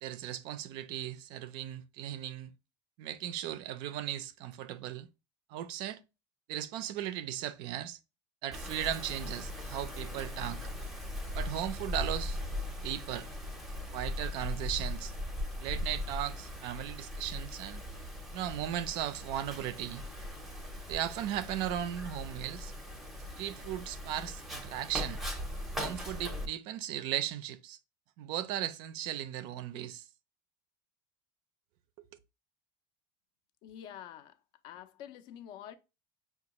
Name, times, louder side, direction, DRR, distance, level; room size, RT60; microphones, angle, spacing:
voice 1, 0.0-2.5 3.0-5.1 5.5-6.0 6.5-8.0 8.4-10.6 11.3-12.4 12.8-13.3 13.9-15.1 15.6-17.8 18.3-20.0 20.9-22.7 23.4-25.2 25.8-27.8 28.2-30.0, right 11 dB, 50° right, 0.4 m, -37 dB
Wind, 8.5-26.5, left 1 dB, ahead, 0.6 m, -39 dB
voice 2, 33.6-34.4 34.6-35.8, left 10 dB, 45° left, 0.4 m, -47 dB
5.3 x 2.3 x 2.9 m
cardioid pair, 170°, 10 cm